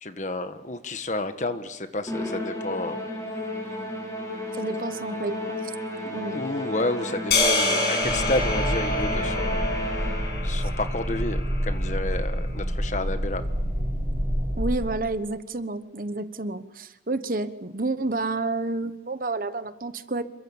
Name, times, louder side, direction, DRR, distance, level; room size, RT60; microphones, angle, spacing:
voice 1, 0.0-3.0 6.2-9.7 10.4-13.4, left 2 dB, 45° left, 9 dB, 1.4 m, -30 dB
Musical instrument, 2.1-10.6, left 1 dB, 15° left, 6.3 m, -32 dB
voice 2, 4.6-5.7 6.1-6.4 14.6-20.2, right 2 dB, 50° right, 11 dB, 1.2 m, -30 dB
sound 1, 7.3-11.7, left 3 dB, 65° left, 7.5 m, -27 dB
sound 2, 8.0-14.7, equal, 15° right, 7.1 m, -28 dB
27.5 x 23.0 x 7.2 m, 0.93 s
head